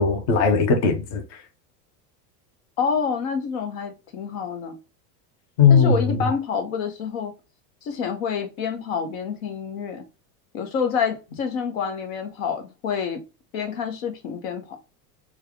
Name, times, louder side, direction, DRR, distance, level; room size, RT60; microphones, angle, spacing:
voice 1, 0.0-1.4 5.6-6.3, left 5 dB, 35° left, 0.6 m, -19 dB
voice 2, 2.8-4.8 5.7-7.3 7.8-10.0 10.5-13.2 13.5-14.6, left 6 dB, 65° left, 1.0 m, -27 dB
3.3 x 2.3 x 3.5 m
supercardioid pair, 170°, 45 cm